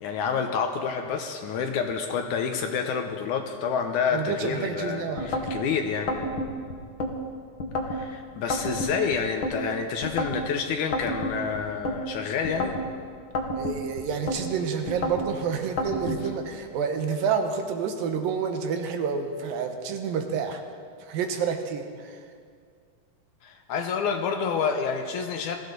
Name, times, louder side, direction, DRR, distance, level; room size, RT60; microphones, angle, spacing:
voice 1, 0.0-6.2 7.9-12.8 23.4-25.6, left 6 dB, 70° left, 4 dB, 2.1 m, -28 dB
voice 2, 4.1-5.5 13.5-20.6 21.0-22.2, right 6 dB, 80° right, 5 dB, 2.8 m, -29 dB
sound 1, 5.2-5.6 6.1-7.1 7.6-8.0 8.5-9.6 10.0-10.4 10.9-12.0 12.4-12.9 13.3-14.4 14.9-15.3 15.8-16.2, left 1 dB, 55° left, 1.4 m, -29 dB
21.0 x 15.0 x 4.0 m, 2.1 s
omnidirectional pair, 4.1 m